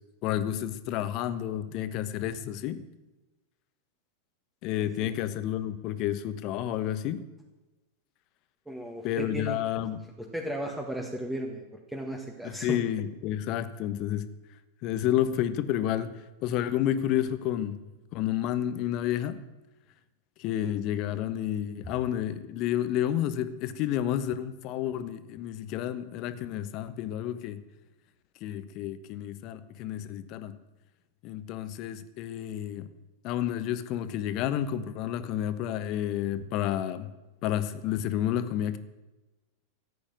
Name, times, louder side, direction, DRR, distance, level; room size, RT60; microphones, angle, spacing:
voice 1, 0.2-2.8 4.6-7.2 9.0-10.0 12.4-14.3 14.8-17.8 18.1-19.4 20.4-27.6 28.4-30.6 31.2-32.9 33.2-37.1 37.4-38.8, left 11 dB, 40° left, 13 dB, 1.0 m, -30 dB
voice 2, 4.8-5.1 8.7-9.6 10.2-11.6 11.9-12.8, right 1 dB, 5° right, 1 dB, 1.8 m, -35 dB
14.5 x 8.6 x 9.1 m, 1.1 s
figure-of-eight pair, 90°, 0 cm